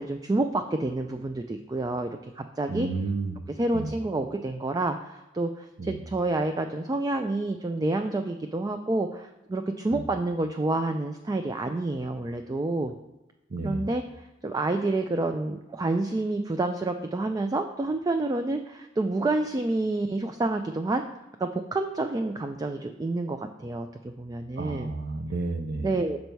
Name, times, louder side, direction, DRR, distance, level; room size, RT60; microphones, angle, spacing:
voice 1, 0.0-2.9 3.5-13.0 13.6-21.0 21.4-24.9 25.8-26.2, right 2 dB, 20° right, 6 dB, 0.3 m, -28 dB
voice 2, 2.7-3.4 3.7-3.9 5.8-6.0 9.9-10.0 13.5-13.9 24.6-26.0, right 3 dB, 55° right, 8 dB, 0.6 m, -31 dB
6.7 x 5.3 x 4.5 m, 0.99 s
head